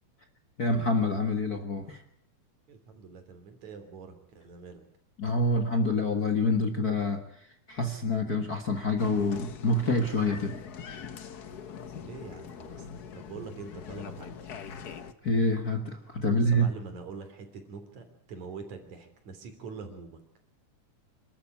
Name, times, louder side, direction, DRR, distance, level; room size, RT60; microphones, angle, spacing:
voice 1, 0.6-2.0 5.2-7.2 7.7-10.6 15.2-16.7, left 2 dB, 40° left, 5 dB, 1.6 m, -27 dB
voice 2, 2.7-4.8 12.0-12.9 13.1-14.4 16.3-20.2, right 5 dB, 65° right, 7 dB, 4.5 m, -44 dB
Applause, 9.0-15.1, left 7 dB, 75° left, 0.8 m, -42 dB
27.5 x 13.0 x 8.2 m, 0.72 s
omnidirectional pair, 3.5 m